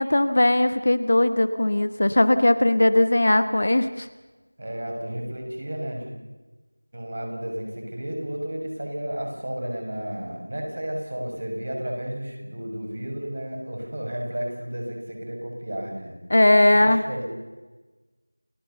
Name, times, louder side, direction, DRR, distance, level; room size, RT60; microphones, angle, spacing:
voice 1, 0.0-4.1 16.3-17.0, left 1 dB, 40° left, 11 dB, 1.1 m, -19 dB
voice 2, 4.6-6.1 6.9-16.1 16.7-17.3, right 1 dB, 40° right, 1 dB, 6.3 m, -32 dB
29.5 x 16.5 x 6.9 m, 1.2 s
figure-of-eight pair, 175°, 0 cm